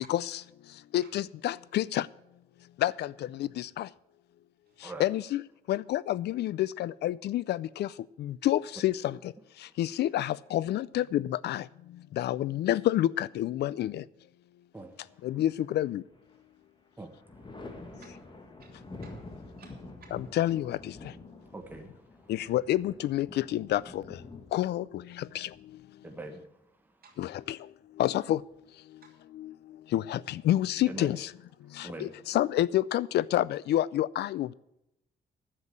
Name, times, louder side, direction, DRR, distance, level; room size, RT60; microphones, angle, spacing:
voice 1, 0.1-0.4 0.9-2.1 2.8-3.9 5.0-5.4 5.7-7.9 8.2-9.2 9.8-11.6 12.2-14.0 15.2-16.0 20.1-20.8 22.3-24.0 24.5-24.9 25.2-25.5 27.2-27.6 28.0-28.4 29.4-29.5 29.9-31.3 31.8-34.5, left 13 dB, 75° left, 0.4 m, -28 dB
Thunder, 15.6-16.4 16.8-26.4 27.9-28.7, left 2 dB, 30° left, 1.9 m, -48 dB
voice 2, 18.6-20.1 27.0-27.2, right 5 dB, 60° right, 3.4 m, -58 dB
voice 3, 21.5-22.0 26.0-26.5 30.9-31.1 31.8-32.1, right 2 dB, 10° right, 1.3 m, -42 dB
9.7 x 7.4 x 8.7 m
cardioid pair, 105°, 17 cm